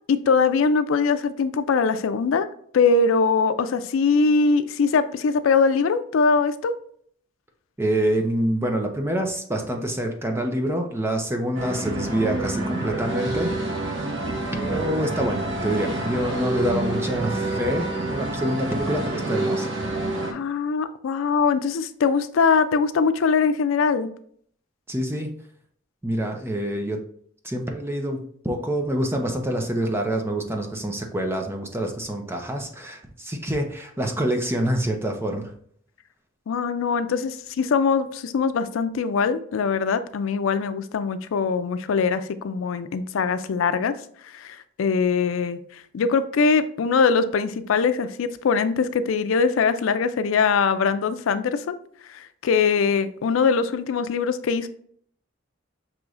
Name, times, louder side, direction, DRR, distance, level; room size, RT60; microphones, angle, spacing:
voice 1, 0.1-2.5 2.7-6.7 20.3-24.1 36.5-43.9 44.3-45.6 45.9-51.8 52.1-54.7, left 5 dB, 85° left, 11 dB, 0.4 m, -22 dB
voice 2, 7.8-13.9 14.5-19.7 24.9-25.3 26.0-27.0 27.4-35.5, right 1 dB, 10° right, 3 dB, 0.5 m, -26 dB
sound 1, 11.5-20.3, right 2 dB, 65° right, 0.8 m, -28 dB
6.2 x 3.0 x 2.4 m, 0.62 s
head